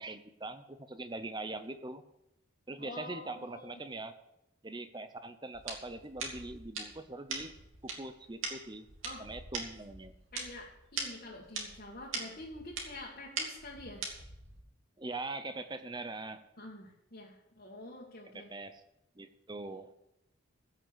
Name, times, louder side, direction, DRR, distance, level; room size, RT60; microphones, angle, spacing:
voice 1, 0.0-2.0 2.7-4.2 4.6-7.5 7.8-8.9 9.2-10.2 15.0-16.4 18.3-18.8 19.2-19.9, right 2 dB, 20° right, 10 dB, 0.8 m, -42 dB
voice 2, 2.8-3.8 9.0-9.3 10.3-14.1 16.6-18.5, left 2 dB, 45° left, -4 dB, 2.0 m, -47 dB
sound 1, 5.5-14.6, right 4 dB, 75° right, 2.7 m, -42 dB
15.5 x 6.4 x 6.9 m, 0.85 s
head